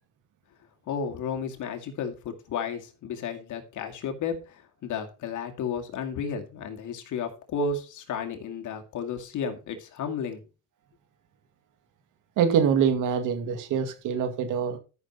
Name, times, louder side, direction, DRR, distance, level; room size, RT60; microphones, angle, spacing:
voice 1, 0.9-10.4, left 5 dB, 80° left, 2.3 m, -33 dB
voice 2, 12.4-14.8, right 7 dB, 85° right, 2.3 m, -24 dB
13.5 x 6.4 x 4.2 m
cardioid pair, 90°, 30 cm